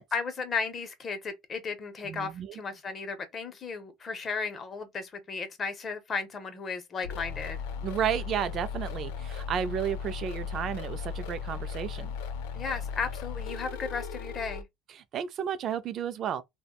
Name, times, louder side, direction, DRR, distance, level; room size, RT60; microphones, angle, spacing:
voice 1, 0.1-7.6 12.5-14.7, left 5 dB, 30° left, 0.8 m, -35 dB
voice 2, 2.0-2.6 7.8-12.1 14.9-16.4, right 9 dB, 45° right, 0.3 m, -32 dB
sound 1, 7.0-14.6, left 6 dB, 80° left, 0.4 m, -37 dB
3.3 x 2.1 x 2.3 m
supercardioid pair, 105°, 0 cm